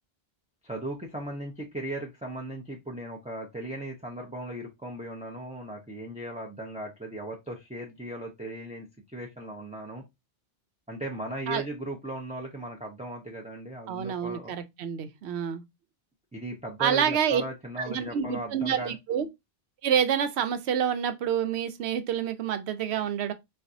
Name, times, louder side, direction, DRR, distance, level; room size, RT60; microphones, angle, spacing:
voice 1, 0.6-10.0 10.9-14.5 16.3-19.0, right 1 dB, 10° right, 0.5 m, -37 dB
voice 2, 13.9-15.6 16.8-17.4 17.9-19.3 19.8-23.3, right 8 dB, 85° right, 0.9 m, -28 dB
4.2 x 2.3 x 2.5 m
omnidirectional pair, 1.1 m